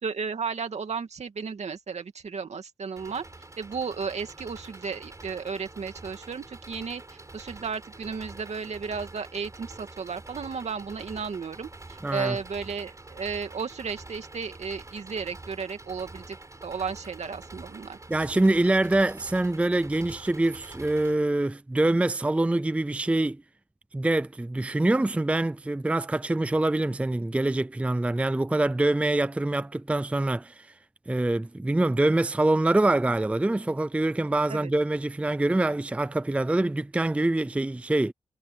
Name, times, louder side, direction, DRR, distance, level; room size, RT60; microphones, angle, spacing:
voice 1, 0.0-3.2 3.6-16.4 16.6-18.0 34.5-34.7, right 5 dB, 75° right, 2.5 m, -34 dB
Engine, 3.0-21.1, right 2 dB, 30° right, 4.9 m, -46 dB
voice 2, 12.0-12.4 18.1-23.4 23.9-30.7 31.1-38.1, right 2 dB, 10° right, 0.4 m, -25 dB
wide cardioid pair, 110°, 11 cm